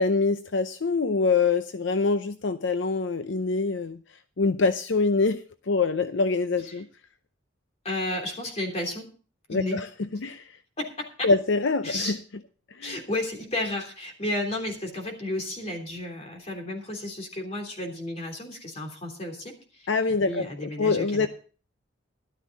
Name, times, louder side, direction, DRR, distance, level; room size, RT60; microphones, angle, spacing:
voice 1, 0.0-4.0 4.4-6.9 9.5-9.9 10.2-10.5 11.2-12.2 12.7-13.0 19.9-21.3, left 4 dB, 75° left, 10 dB, 0.6 m, -25 dB
voice 2, 7.8-9.1 9.5-9.8 10.8-11.3 11.8-12.2 12.8-19.5 19.8-19.9 20.3-21.3, left 1 dB, 35° left, 2 dB, 3.2 m, -32 dB
13.0 x 12.0 x 4.1 m, 0.39 s
head